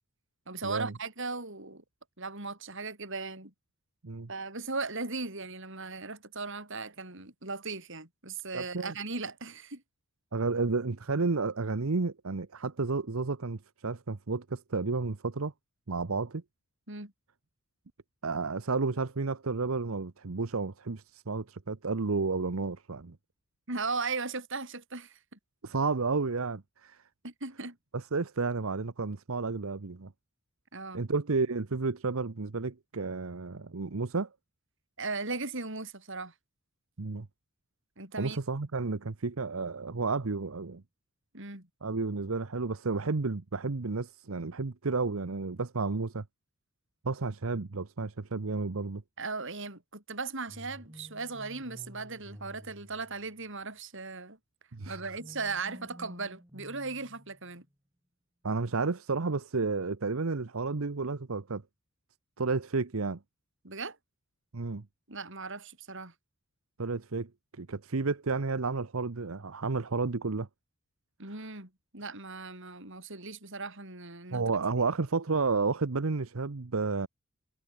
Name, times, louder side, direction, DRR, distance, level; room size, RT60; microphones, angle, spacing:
voice 1, 0.5-1.8 2.2-3.5 4.3-9.8 16.9-17.1 23.7-25.4 27.2-27.8 30.7-31.0 35.0-36.3 38.0-38.4 41.3-41.7 49.2-54.4 54.9-57.6 63.6-64.0 65.1-66.1 71.2-74.6, right 3 dB, 65° right, 7.4 m, -37 dB
voice 2, 8.5-8.9 10.3-15.5 15.9-16.4 18.2-23.2 25.6-27.0 27.9-30.1 30.9-34.3 37.0-37.3 38.2-40.8 41.8-46.2 47.0-49.0 54.7-55.0 58.4-61.6 62.4-63.2 64.5-64.8 66.8-67.3 67.6-70.5 74.3-77.1, right 4 dB, 80° right, 0.9 m, -31 dB
sound 1, 50.5-53.6 54.8-57.7, equal, 15° right, 4.8 m, -51 dB
head